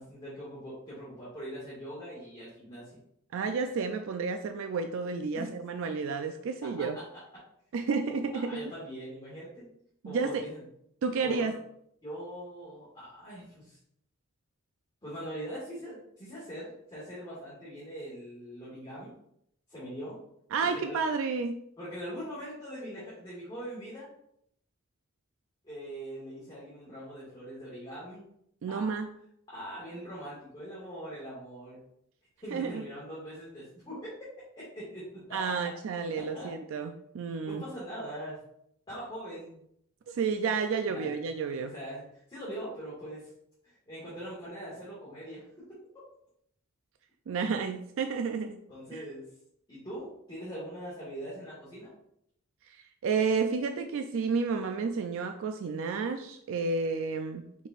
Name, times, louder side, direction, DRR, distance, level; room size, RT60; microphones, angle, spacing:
voice 1, 0.0-3.0 5.3-5.5 6.8-7.0 8.3-9.7 10.0-10.6 11.2-11.5 12.0-13.8 15.0-19.1 19.7-20.2 20.6-21.0 21.8-24.1 25.6-28.3 28.7-28.9 29.5-31.8 32.4-34.1 34.7-35.6 36.2-36.5 37.4-38.4 38.9-39.6 40.9-41.2 41.7-43.3 43.6-45.6 48.7-49.2 49.7-51.9, equal, 20° left, -10 dB, 1.8 m, -42 dB
voice 2, 3.3-7.0 7.7-8.6 10.0-10.5 11.0-11.5 20.5-21.6 28.6-29.1 32.5-32.8 35.3-37.6 40.1-41.7 47.3-48.6 48.9-49.0 52.7-57.7, right 5 dB, 65° right, 6 dB, 0.3 m, -31 dB
5.2 x 4.2 x 2.4 m, 0.72 s
head